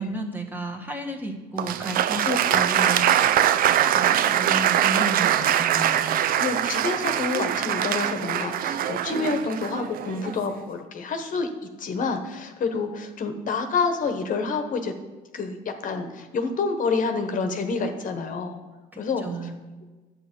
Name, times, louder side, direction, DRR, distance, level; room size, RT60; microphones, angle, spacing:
voice 1, 0.0-3.1 3.4-6.4 18.9-19.6, right 2 dB, 10° right, 2 dB, 1.5 m, -33 dB
Applause, 1.6-10.5, right 10 dB, 60° right, 0.5 m, -23 dB
voice 2, 2.2-2.6 6.4-11.5 11.8-14.9 15.3-18.6 19.0-19.2, left 4 dB, 50° left, 6 dB, 1.1 m, -28 dB
10.5 x 7.9 x 5.3 m, 1.2 s
cardioid pair, 110°, 17 cm